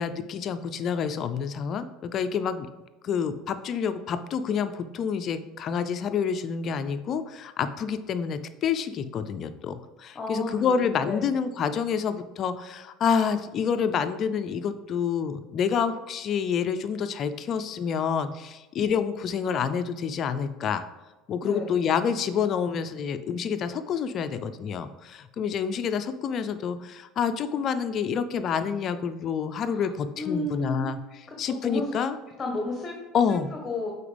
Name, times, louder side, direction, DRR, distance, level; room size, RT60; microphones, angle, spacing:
voice 1, 0.0-2.7 3.0-20.9 21.3-31.0 31.4-32.1 33.1-33.5, left 6 dB, 50° left, 11 dB, 0.5 m, -28 dB
voice 2, 10.1-11.3 21.4-21.7 29.6-29.9 30.2-30.9 31.3-31.9 32.4-32.9 33.3-33.9, left 2 dB, 30° left, 1 dB, 1.2 m, -33 dB
8.4 x 4.4 x 3.4 m, 1.1 s
hypercardioid pair, 85°, 0 cm